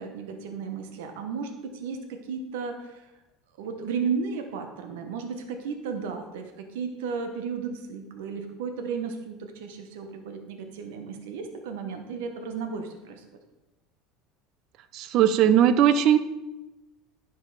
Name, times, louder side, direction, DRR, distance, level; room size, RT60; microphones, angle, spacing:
voice 1, 0.0-3.1 3.6-13.2, right 5 dB, 85° right, 6 dB, 1.0 m, -34 dB
voice 2, 14.9-16.2, right 10 dB, 55° right, 12 dB, 0.6 m, -19 dB
10.5 x 5.4 x 4.0 m, 1.0 s
supercardioid pair, 120°, 0 cm